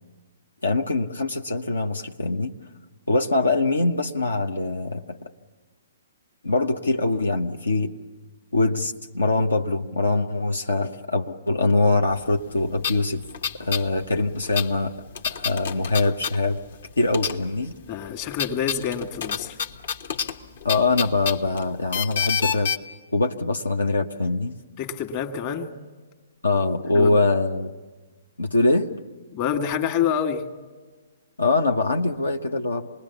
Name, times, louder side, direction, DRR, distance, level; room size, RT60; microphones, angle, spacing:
voice 1, 0.6-2.5 3.1-5.3 6.4-7.9 8.5-13.2 13.6-14.9 15.3-16.6 17.0-17.7 20.6-22.7 23.1-24.6 26.4-27.7 28.4-28.9 31.4-32.9, left 2 dB, 85° left, 4 dB, 0.9 m, -23 dB
sound 1, 12.4-12.5 12.8-13.9 14.1-16.8 17.1-17.7 18.0-22.8, left 7 dB, 65° left, 1.2 m, -29 dB
voice 2, 17.9-19.6 24.8-25.7 26.9-27.2 29.3-30.4, left 8 dB, 40° left, 6 dB, 1.7 m, -27 dB
26.5 x 20.5 x 7.0 m, 1.3 s
figure-of-eight pair, 125°, 0 cm